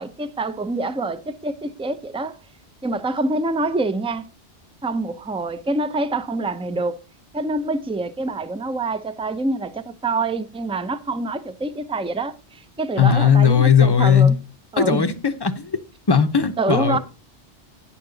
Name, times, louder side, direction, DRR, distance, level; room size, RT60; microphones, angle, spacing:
voice 1, 0.0-2.4 2.8-4.3 4.8-7.0 7.3-14.4 14.7-15.1 16.6-17.0, right 2 dB, 5° right, 0.5 m, -26 dB
voice 2, 13.0-14.3 14.8-15.7 16.1-17.0, left 7 dB, 25° left, 0.8 m, -17 dB
9.8 x 7.3 x 3.9 m
omnidirectional pair, 1.2 m